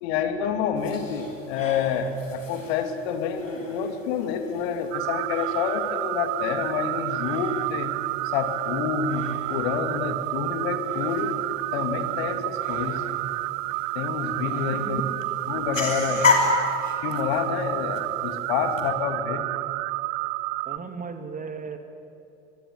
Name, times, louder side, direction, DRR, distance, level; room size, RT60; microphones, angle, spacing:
voice 1, 0.0-7.9 8.2-11.4 11.7-13.0 13.9-15.0 15.5-16.3 17.0-19.4, left 6 dB, 55° left, 7 dB, 2.8 m, -28 dB
sound 1, 0.8-18.9, left 4 dB, 85° left, 3.3 m, -33 dB
sound 2, 4.9-20.8, right 20 dB, 45° right, 0.7 m, -30 dB
voice 2, 20.6-21.8, right 5 dB, 20° right, 7 dB, 2.6 m, -36 dB
24.5 x 20.5 x 9.7 m, 2.7 s
figure-of-eight pair, 75°, 37 cm